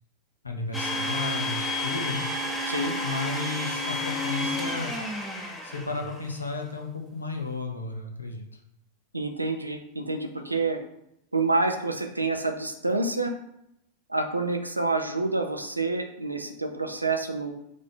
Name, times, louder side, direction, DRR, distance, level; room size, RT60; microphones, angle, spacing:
voice 1, 0.4-2.3 3.0-5.0 5.6-8.4, left 3 dB, 80° left, 2 dB, 0.8 m, -33 dB
Domestic sounds home sounds, 0.7-6.2, left 1 dB, 5° left, 0.9 m, -31 dB
voice 2, 9.1-10.8 11.3-13.3 14.1-17.5, right 3 dB, 85° right, 5 dB, 0.5 m, -28 dB
4.9 x 2.8 x 3.8 m, 0.80 s
figure-of-eight pair, 90°, 0 cm